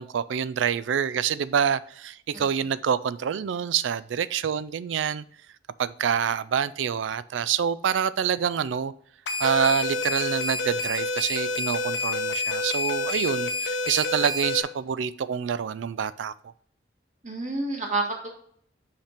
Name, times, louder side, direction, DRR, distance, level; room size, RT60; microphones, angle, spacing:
voice 1, 0.0-5.2 5.8-8.9 9.4-16.3, right 7 dB, 85° right, 0.4 m, -26 dB
voice 2, 2.3-2.6 17.2-18.3, right 2 dB, 40° right, 1.6 m, -29 dB
sound 1, 9.3-14.6, left 2 dB, 70° left, 0.8 m, -28 dB
5.7 x 5.1 x 4.3 m
head